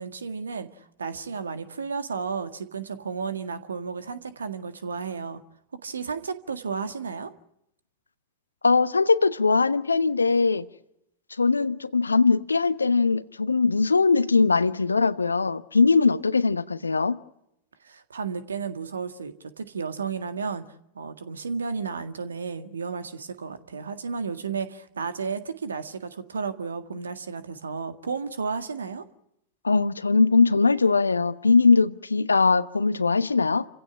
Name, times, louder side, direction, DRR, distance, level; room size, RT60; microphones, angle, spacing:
voice 1, 0.0-5.4 5.8-7.3 17.8-20.6 21.0-29.0, right 5 dB, 70° right, 1.8 m, -33 dB
voice 2, 8.6-10.7 11.4-17.2 29.6-33.7, left 4 dB, 80° left, 1.1 m, -21 dB
29.5 x 16.5 x 9.7 m
figure-of-eight pair, 90°, 0 cm